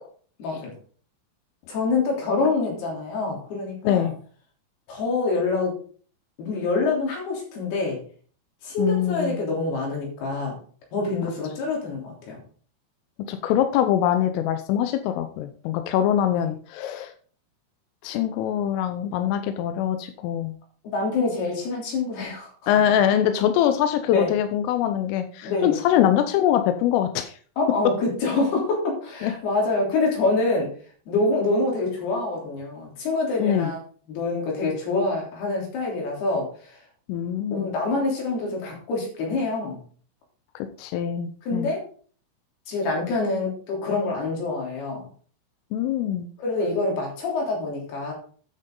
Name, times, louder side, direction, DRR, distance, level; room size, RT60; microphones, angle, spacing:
voice 1, 0.4-0.7 1.7-4.1 4.9-5.8 6.4-8.0 8.6-10.6 10.9-12.4 16.3-16.5 20.8-22.5 24.1-24.3 25.4-25.8 27.6-30.7 31.1-33.8 34.1-36.8 37.5-39.8 41.5-41.8 42.7-45.0 46.4-48.1, left 3 dB, 55° left, -1 dB, 4.9 m, -26 dB
voice 2, 8.8-9.4 13.3-17.1 18.0-20.5 22.7-27.4 29.2-29.3 33.4-33.7 37.1-37.7 40.6-41.7 45.7-46.3, left 10 dB, 90° left, 8 dB, 3.4 m, -23 dB
9.3 x 9.2 x 3.8 m, 0.43 s
omnidirectional pair, 5.7 m